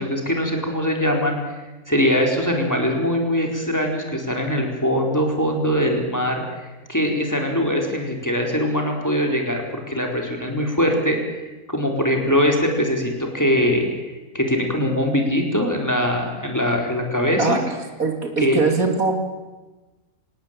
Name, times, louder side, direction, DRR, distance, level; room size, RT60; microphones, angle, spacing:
voice 1, 0.0-1.5 1.9-13.9 14.3-17.6 18.4-18.6, equal, 10° left, 1 dB, 4.2 m, -22 dB
voice 2, 18.0-19.2, right 4 dB, 70° right, 4 dB, 3.4 m, -21 dB
26.0 x 18.5 x 9.0 m, 1.2 s
omnidirectional pair, 1.6 m